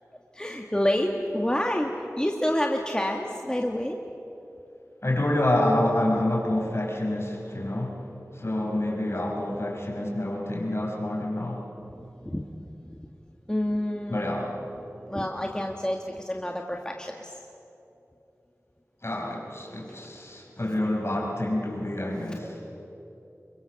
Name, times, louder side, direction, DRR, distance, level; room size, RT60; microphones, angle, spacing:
voice 1, 0.4-1.9 2.2-4.0 12.3-12.4 13.5-14.6 15.1-17.3, left 1 dB, 15° left, 1 dB, 1.7 m, -28 dB
voice 2, 5.0-8.1 8.3-11.7 14.1-14.5 19.0-22.6, left 1 dB, 50° left, 0 dB, 5.4 m, -27 dB
28.5 x 23.0 x 7.1 m, 2.8 s
wide cardioid pair, 50°, 6 cm